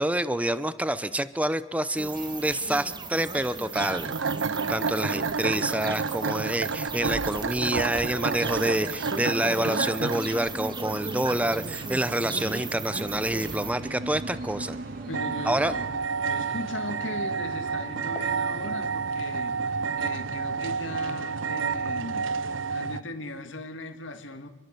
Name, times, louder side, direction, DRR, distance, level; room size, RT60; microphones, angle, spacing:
voice 1, 0.0-4.1 4.7-14.8 15.4-15.7, right 1 dB, 5° right, 14 dB, 0.7 m, -27 dB
sound 1, 2.0-13.7, right 3 dB, 25° right, 1.5 m, -36 dB
sound 2, 3.7-23.0, right 5 dB, 75° right, 0.7 m, -31 dB
sound 3, 9.3-15.9, right 1 dB, 45° right, 3.0 m, -43 dB
voice 2, 15.1-15.8 16.2-19.6 19.9-22.3 22.7-24.5, left 1 dB, 70° left, 7 dB, 2.4 m, -38 dB
26.5 x 23.0 x 6.9 m, 1.2 s
head